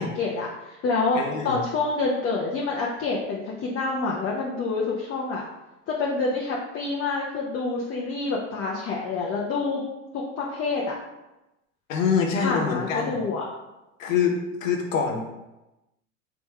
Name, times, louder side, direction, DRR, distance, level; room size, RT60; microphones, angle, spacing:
voice 1, 0.0-1.2 1.4-5.4 5.9-9.8 10.1-11.0 12.4-13.5, left 3 dB, 35° left, -3 dB, 0.8 m, -27 dB
voice 2, 1.1-1.6 11.9-13.2 14.0-15.3, left 6 dB, 90° left, 2 dB, 0.9 m, -25 dB
3.6 x 3.0 x 4.6 m, 0.99 s
hypercardioid pair, 100°, 38 cm